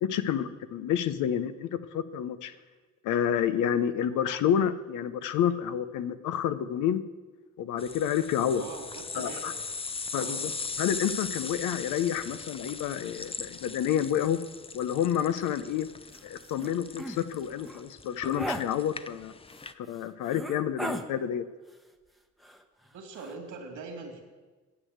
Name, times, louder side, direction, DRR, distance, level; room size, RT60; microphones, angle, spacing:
voice 1, 0.0-2.5 3.0-7.0 7.6-8.6 9.1-9.5 10.1-10.5 10.8-14.4 14.7-15.9 16.2-19.3 19.8-21.4, left 9 dB, 85° left, 12 dB, 0.8 m, -29 dB
sound 1, 7.8-19.7, left 4 dB, 20° left, 0.5 m, -40 dB
voice 2, 8.5-9.4 10.2-10.4 22.9-24.2, right 4 dB, 80° right, 2 dB, 2.7 m, -42 dB
sound 2, 16.1-16.2 16.6-16.7 17.0-17.2 17.6-17.8 18.3-18.6 19.6-19.7 20.3-21.1 22.4-22.9 23.2-23.3, equal, ahead, 0.9 m, -36 dB
9.7 x 8.2 x 7.9 m, 1.3 s
cardioid pair, 90°, 30 cm